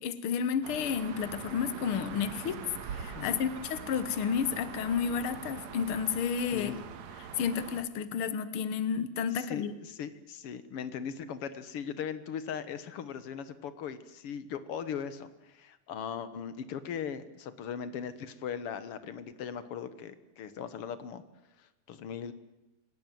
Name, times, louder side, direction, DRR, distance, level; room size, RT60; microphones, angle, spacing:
voice 1, 0.0-6.7 7.2-9.7, left 7 dB, 85° left, 13 dB, 1.1 m, -31 dB
sound 1, 0.6-7.8, right 7 dB, 60° right, 2.4 m, -43 dB
voice 2, 6.5-6.8 9.3-21.2 21.6-22.3, left 7 dB, 60° left, 13 dB, 1.5 m, -39 dB
28.5 x 18.0 x 9.2 m, 0.95 s
omnidirectional pair, 4.3 m